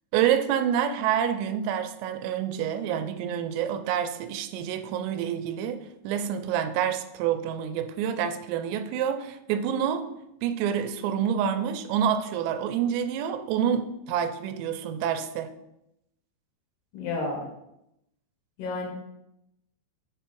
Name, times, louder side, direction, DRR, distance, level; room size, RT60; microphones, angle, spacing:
voice 1, 0.1-10.1 10.4-15.5, right 9 dB, 85° right, 2.7 m, -27 dB
voice 2, 16.9-17.5 18.6-18.9, left 3 dB, 75° left, 3.0 m, -31 dB
7.2 x 3.4 x 4.6 m
omnidirectional pair, 4.9 m